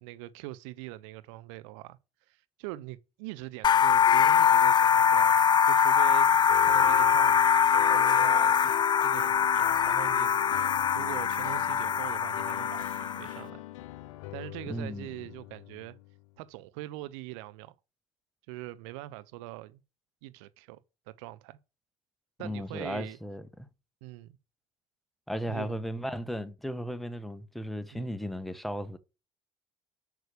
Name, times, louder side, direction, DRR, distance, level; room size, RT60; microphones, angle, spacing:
voice 1, 0.0-2.0 2.3-6.3 6.6-7.4 7.9-8.7 9.0-10.3 10.6-13.6 14.3-16.0 16.4-17.7 18.5-19.8 20.2-20.8 21.1-21.6 22.4-23.2 24.0-24.4 25.5-25.8 27.9-28.2, right 17 dB, 70° right, 0.7 m, -42 dB
sound 1, 3.6-13.4, left 8 dB, 30° left, 0.4 m, -23 dB
sound 2, 6.5-16.3, left 15 dB, 75° left, 0.6 m, -42 dB
voice 2, 14.7-15.1 22.4-23.7 25.3-29.0, equal, ahead, 1.2 m, -35 dB
8.1 x 6.4 x 6.7 m
hypercardioid pair, 60°, 16 cm